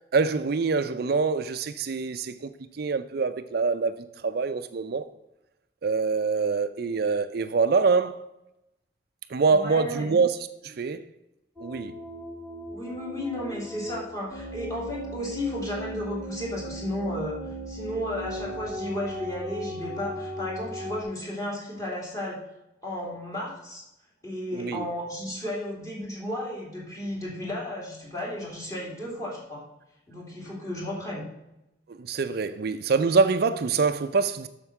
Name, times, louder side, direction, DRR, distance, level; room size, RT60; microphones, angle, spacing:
voice 1, 0.0-5.0 5.8-8.2 9.3-10.3 10.6-11.0 11.6-11.9 24.5-24.8 31.9-34.5, right 4 dB, 55° right, 0.4 m, -25 dB
voice 2, 9.5-10.0 12.7-17.4 17.7-22.4 22.8-23.8 24.2-29.6 30.1-31.3, left 1 dB, 20° left, 2.7 m, -33 dB
sound 1, 11.6-21.0, equal, 10° right, 1.1 m, -37 dB
7.8 x 6.5 x 5.9 m
head